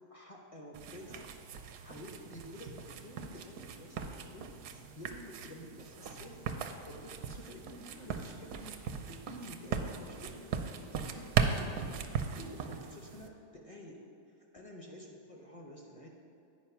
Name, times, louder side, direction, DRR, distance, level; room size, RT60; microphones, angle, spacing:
voice 1, 0.1-1.3 1.8-14.1 14.4-16.1, equal, 35° left, 0 dB, 0.5 m, -50 dB
sound 1, 0.7-13.3, right 6 dB, 80° right, 1.1 m, -38 dB
9.5 x 4.8 x 5.8 m, 2.7 s
omnidirectional pair, 1.7 m